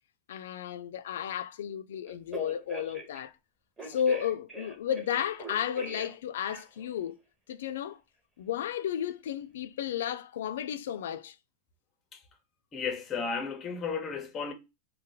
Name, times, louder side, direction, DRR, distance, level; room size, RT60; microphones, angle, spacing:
voice 1, 0.3-3.3 3.9-7.2 7.5-8.0 8.4-11.4, left 9 dB, 85° left, 0.3 m, -33 dB
Telephone, 2.1-3.2 3.8-6.1 6.5-6.9, right 3 dB, 15° right, 1.1 m, -43 dB
voice 2, 12.7-14.5, left 5 dB, 25° left, 0.7 m, -33 dB
2.7 x 2.2 x 3.8 m
supercardioid pair, 135°, 0 cm